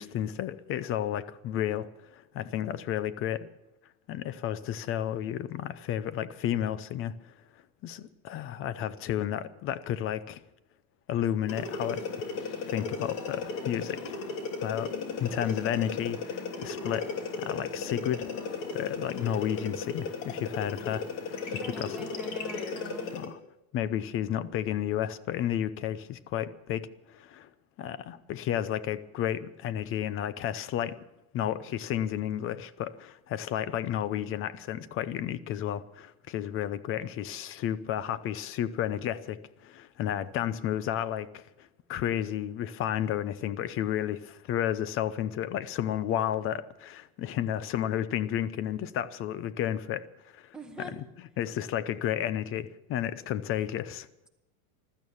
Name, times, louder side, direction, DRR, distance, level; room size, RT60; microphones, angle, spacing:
voice 1, 0.0-3.5 4.1-7.3 7.8-10.4 11.1-12.0 12.7-14.1 14.6-17.1 17.4-18.3 18.7-22.1 23.1-23.4 23.7-27.5 27.8-31.0 31.3-50.0 50.3-51.0 51.4-54.1, left 11 dB, 30° left, 16 dB, 0.6 m, -32 dB
sound 1, 11.5-23.3, left 4 dB, 45° left, 2.7 m, -35 dB
voice 2, 21.6-23.1 50.5-51.0, right 1 dB, ahead, 1 dB, 1.8 m, -43 dB
15.5 x 13.0 x 7.1 m, 0.89 s
supercardioid pair, 150°, 44 cm